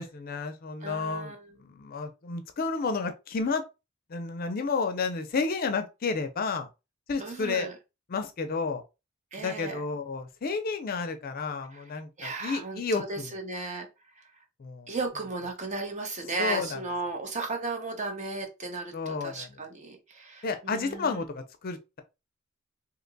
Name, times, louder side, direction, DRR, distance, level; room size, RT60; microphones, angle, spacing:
voice 1, 0.0-3.6 4.1-6.7 7.1-7.7 8.1-8.8 9.4-13.3 14.6-14.9 16.4-16.8 18.9-19.6 20.4-22.0, left 4 dB, 45° left, 0.5 m, -31 dB
voice 2, 0.8-1.5 7.2-7.7 9.3-9.8 11.7-11.8 12.2-13.9 14.9-21.2, right 3 dB, 35° right, 0.7 m, -35 dB
2.8 x 2.2 x 3.8 m
head